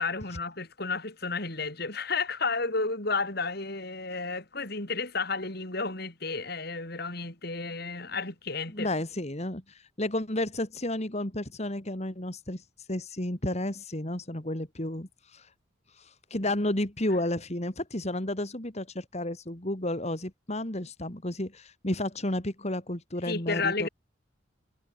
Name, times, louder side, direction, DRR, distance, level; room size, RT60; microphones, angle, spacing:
voice 1, 0.0-8.9 23.2-23.9, left 4 dB, 55° left, 4.9 m, -32 dB
voice 2, 8.7-15.5 15.9-23.9, left 1 dB, 35° left, 2.9 m, -32 dB
head